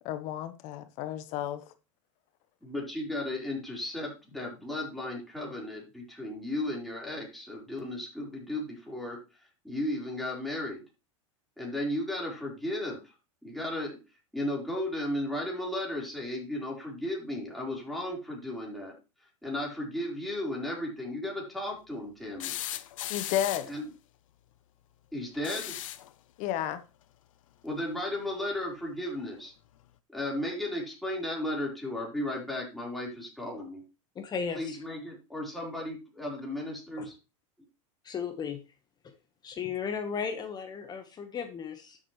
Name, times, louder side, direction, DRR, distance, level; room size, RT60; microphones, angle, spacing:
voice 1, 0.0-1.6 23.1-23.7 26.4-26.8, left 11 dB, 45° left, 1.1 m, -32 dB
voice 2, 2.6-9.2 9.6-10.8 11.6-13.0 13.4-14.0 14.3-18.9 19.4-22.5 23.7-23.8 25.1-25.7 27.6-29.5 30.1-33.8 34.5-37.1, left 1 dB, ahead, 4.1 m, -35 dB
sound 1, 22.4-23.8 25.3-26.1 27.8-27.9 29.3-29.4, left 13 dB, 80° left, 0.8 m, -37 dB
voice 3, 34.1-34.8 37.0-37.1 38.0-38.6 39.4-42.0, left 6 dB, 25° left, 1.2 m, -35 dB
12.0 x 7.5 x 3.2 m
supercardioid pair, 130°, 17 cm